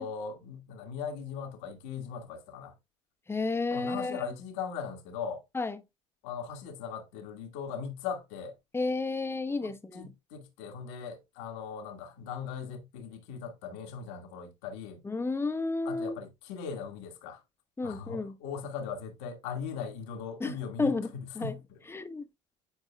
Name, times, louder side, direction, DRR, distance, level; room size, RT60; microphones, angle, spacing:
voice 1, 0.0-2.7 3.7-5.4 6.2-8.5 9.6-15.0 15.8-17.4 17.8-21.8, left 6 dB, 75° left, 1.7 m, -39 dB
voice 2, 3.3-4.3 5.5-5.8 8.7-10.1 15.0-16.2 17.8-18.4 20.4-21.5 21.9-22.3, left 3 dB, 15° left, 0.9 m, -32 dB
9.1 x 4.6 x 2.3 m
hypercardioid pair, 75°, 15 cm